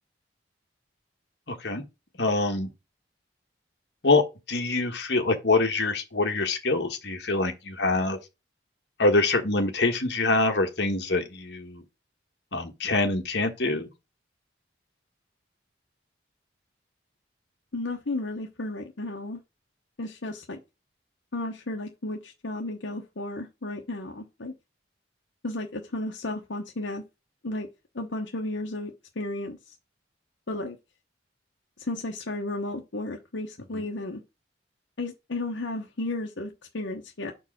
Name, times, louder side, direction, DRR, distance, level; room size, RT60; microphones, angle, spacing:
voice 1, 2.2-2.7 4.0-4.2 4.5-8.2 9.0-11.8 12.5-13.9, left 3 dB, 65° left, 1.3 m, -25 dB
voice 2, 17.7-19.4 20.0-20.6 21.3-24.5 25.4-27.0 27.4-27.7 27.9-28.9 29.2-29.7 30.5-30.8 31.8-34.2 35.0-37.3, left 2 dB, 80° left, 0.9 m, -33 dB
4.8 x 4.6 x 6.0 m
head